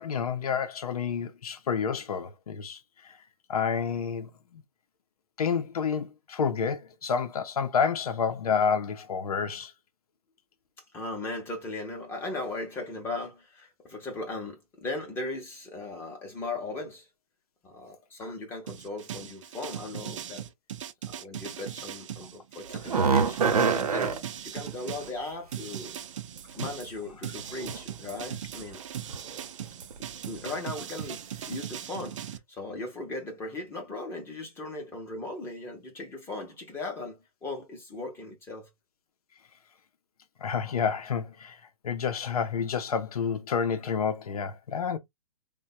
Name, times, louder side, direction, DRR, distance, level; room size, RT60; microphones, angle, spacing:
voice 1, 0.0-2.8 3.0-3.1 3.5-4.3 5.4-9.7 26.6-26.7 40.4-41.6 41.8-45.0, left 6 dB, 85° left, 0.6 m, -29 dB
voice 2, 10.9-17.1 17.6-20.4 21.0-25.9 26.5-28.8 30.3-38.7, left 2 dB, 10° left, 0.6 m, -38 dB
sound 1, 18.7-25.1 25.5-32.4, right 10 dB, 55° right, 0.5 m, -39 dB
sound 2, 22.7-24.2 26.4-26.5 27.4-27.8 28.1-28.4 29.1-29.4 29.8-30.0 30.4-30.5, right 5 dB, 80° right, 0.8 m, -25 dB
3.3 x 2.2 x 2.6 m
hypercardioid pair, 150°, 19 cm